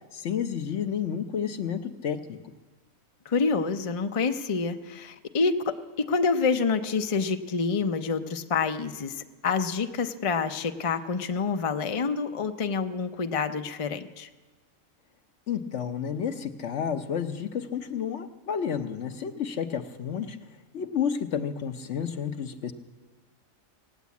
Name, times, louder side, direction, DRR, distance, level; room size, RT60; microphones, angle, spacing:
voice 1, 0.1-2.4 15.5-20.5 20.7-22.7, left 7 dB, 60° left, 8 dB, 1.1 m, -31 dB
voice 2, 3.3-14.3, left 4 dB, 35° left, 7 dB, 0.5 m, -27 dB
18.5 x 9.3 x 8.3 m, 1.3 s
omnidirectional pair, 1.4 m